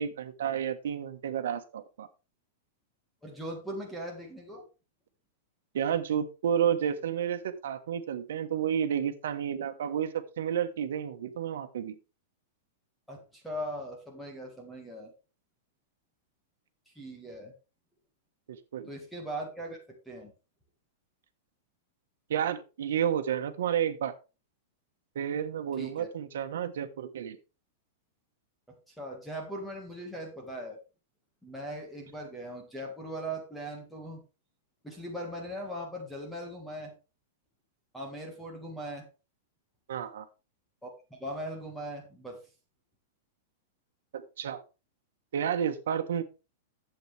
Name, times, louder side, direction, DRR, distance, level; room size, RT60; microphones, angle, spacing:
voice 1, 0.0-2.1 5.7-12.0 18.5-18.9 22.3-24.1 25.1-27.4 39.9-40.3 44.1-44.6 45.3-46.2, right 9 dB, 80° right, 7 dB, 1.2 m, -31 dB
voice 2, 3.2-4.6 13.1-15.1 17.0-17.5 18.9-19.8 20.1-20.3 25.8-26.1 29.0-30.8 31.4-34.2 34.8-36.9 37.9-39.1 40.8-42.4, right 1 dB, ahead, 1 dB, 1.7 m, -39 dB
11.0 x 7.9 x 3.4 m, 0.30 s
supercardioid pair, 170°, 0 cm